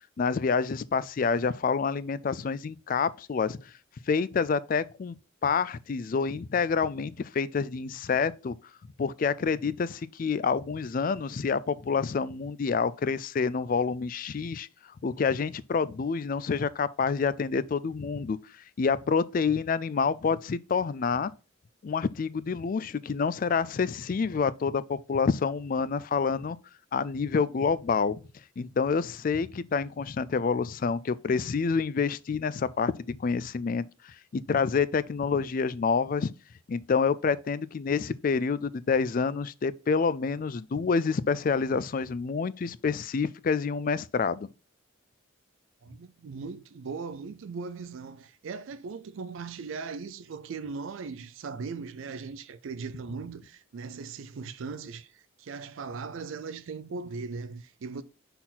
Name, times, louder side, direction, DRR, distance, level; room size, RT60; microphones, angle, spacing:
voice 1, 0.2-3.7 4.1-5.2 5.4-8.6 9.0-14.7 15.0-18.4 18.8-21.3 21.8-26.6 26.9-28.2 28.6-36.3 36.7-44.5, left 5 dB, 40° left, 0.3 m, -28 dB
voice 2, 45.8-58.0, right 4 dB, 75° right, 0.4 m, -39 dB
5.9 x 4.2 x 3.9 m
head